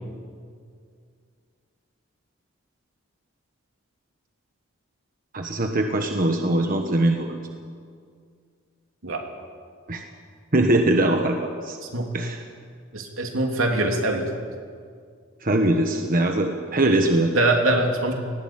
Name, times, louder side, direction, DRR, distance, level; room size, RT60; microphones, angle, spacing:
voice 1, 5.3-7.4 9.9-10.0 10.5-11.4 11.6-11.8 12.1-12.4 15.4-17.3, right 1 dB, 40° right, 4 dB, 1.3 m, -21 dB
voice 2, 12.9-14.3 17.3-18.1, right 2 dB, 80° right, 2 dB, 3.0 m, -23 dB
19.0 x 17.0 x 9.0 m, 2.1 s
head